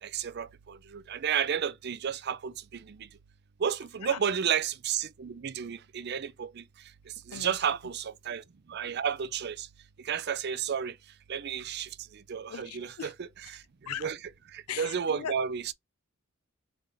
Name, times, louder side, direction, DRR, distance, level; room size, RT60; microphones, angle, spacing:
voice 1, 0.0-3.1 3.6-6.6 7.3-8.4 8.7-9.7 10.0-11.0 11.3-13.6 14.0-14.2 14.5-15.7, right 7 dB, 50° right, 0.4 m, -32 dB
voice 2, 12.5-13.1 13.9-14.1 14.7-15.3, left 9 dB, 90° left, 0.4 m, -39 dB
3.8 x 3.4 x 4.0 m
head